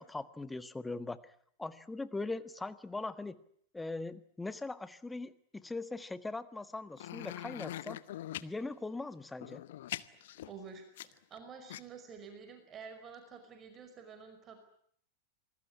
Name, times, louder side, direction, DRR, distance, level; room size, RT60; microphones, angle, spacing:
voice 1, 0.0-1.3 1.6-3.4 3.7-8.0 8.4-9.6, left 3 dB, 10° left, 14 dB, 1.5 m, -40 dB
sound 1, 7.0-8.5 9.3-11.4 11.7-11.8, left 13 dB, 55° left, 1.0 m, -42 dB
voice 2, 10.1-14.6, right 6 dB, 25° right, 7 dB, 5.5 m, -50 dB
27.0 x 20.0 x 9.7 m, 0.66 s
figure-of-eight pair, 90°, 0 cm